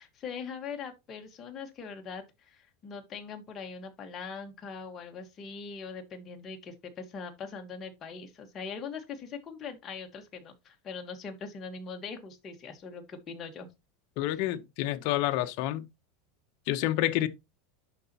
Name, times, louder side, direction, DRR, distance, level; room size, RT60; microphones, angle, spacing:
voice 1, 0.0-13.7, left 5 dB, 20° left, 1.2 m, -41 dB
voice 2, 14.2-15.9 16.7-17.3, left 15 dB, 50° left, 0.6 m, -28 dB
11.0 x 4.0 x 2.8 m
supercardioid pair, 170°, 0 cm